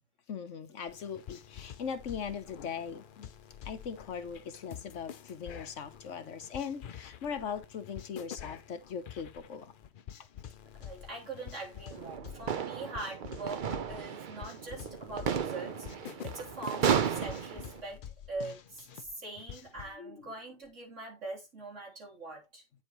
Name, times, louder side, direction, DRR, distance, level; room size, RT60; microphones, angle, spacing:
voice 1, 0.3-3.3 3.6-9.7 20.0-20.3, left 7 dB, 70° left, 1.3 m, -40 dB
sound 1, 0.9-20.0, left 9 dB, 55° left, 0.6 m, -48 dB
voice 2, 10.7-22.6, right 2 dB, 70° right, 3.9 m, -43 dB
sound 2, 11.9-17.8, right 7 dB, 50° right, 0.7 m, -34 dB
9.1 x 7.1 x 3.1 m
omnidirectional pair, 1.3 m